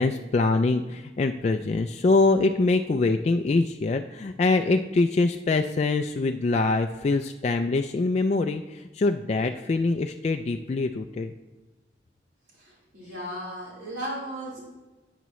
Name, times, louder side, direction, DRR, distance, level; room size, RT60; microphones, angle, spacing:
voice 1, 0.0-11.3, left 3 dB, 35° left, 5 dB, 0.3 m, -24 dB
voice 2, 12.6-14.6, equal, 65° right, -6 dB, 3.8 m, -36 dB
12.0 x 9.3 x 3.1 m, 1.1 s
head